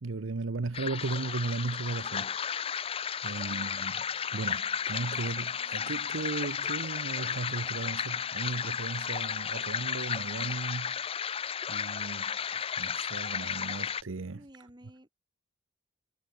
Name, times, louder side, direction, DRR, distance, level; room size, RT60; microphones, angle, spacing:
voice 1, 0.0-4.0 4.3-11.1 11.7-12.4 12.8-14.4, right 3 dB, 75° right, 0.8 m, -36 dB
sound 1, 0.7-14.0, left 7 dB, 30° left, 0.4 m, -33 dB
voice 2, 3.5-3.9 14.3-15.1, right 1 dB, 20° right, 2.5 m, -53 dB
Wind instrument woodwind instrument, 3.9-9.7, left 2 dB, 60° left, 5.4 m, -58 dB
head